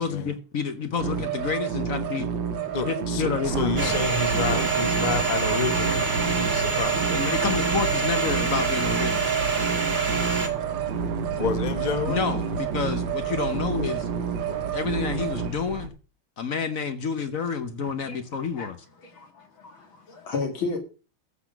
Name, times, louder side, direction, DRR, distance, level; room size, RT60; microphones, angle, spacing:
voice 1, 0.0-2.3 2.9-4.0 7.1-9.4 12.1-14.1 14.7-15.9 16.4-18.8, left 6 dB, 50° left, 1.0 m, -29 dB
sound 1, 1.0-15.5, right 7 dB, 65° right, 1.8 m, -30 dB
voice 2, 2.7-7.2 11.4-12.4 14.5-14.6, left 4 dB, 30° left, 1.0 m, -30 dB
sound 2, 3.4-15.9, right 4 dB, 85° right, 2.1 m, -34 dB
Domestic sounds home sounds, 3.8-10.5, right 4 dB, 25° right, 1.4 m, -27 dB
voice 3, 19.0-20.8, left 4 dB, 70° left, 3.2 m, -33 dB
14.5 x 6.1 x 5.9 m
omnidirectional pair, 2.3 m